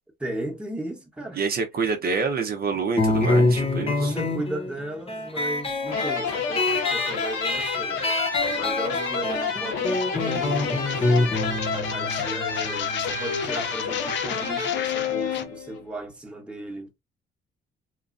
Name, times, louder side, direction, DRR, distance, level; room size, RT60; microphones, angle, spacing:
voice 1, 0.2-1.4 4.0-8.1 8.5-11.3 11.7-16.9, right 1 dB, 5° right, 0.9 m, -35 dB
voice 2, 1.4-4.1, right 5 dB, 50° right, 0.6 m, -27 dB
sound 1, 3.0-14.1, left 2 dB, 30° left, 0.9 m, -26 dB
sound 2, 5.9-15.8, left 6 dB, 85° left, 1.1 m, -29 dB
sound 3, 9.8-15.4, left 8 dB, 65° left, 0.5 m, -36 dB
3.0 x 2.4 x 2.4 m
cardioid pair, 90°, 20 cm